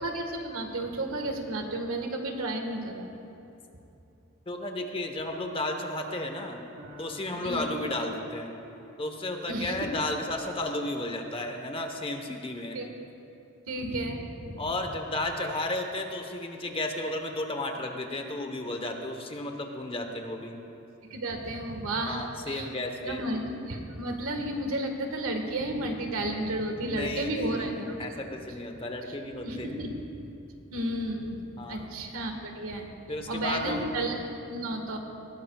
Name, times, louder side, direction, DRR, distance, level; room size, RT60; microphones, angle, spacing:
voice 1, 0.0-3.1 7.4-7.7 9.5-9.9 12.5-12.9 13.7-14.7 21.1-22.7 23.0-28.0 29.4-29.9 30.7-32.9 33.2-35.0, right 1 dB, 90° right, 3 dB, 1.6 m, -32 dB
voice 2, 4.5-6.6 7.0-8.5 9.0-12.8 14.6-20.6 22.0-23.2 26.8-27.7 28.0-29.8 31.6-31.9 33.1-34.0, left 2 dB, 25° left, 4 dB, 1.1 m, -33 dB
sound 1, 6.8-10.0, right 1 dB, 55° right, 3.5 m, -48 dB
20.0 x 17.0 x 2.4 m, 2.8 s
head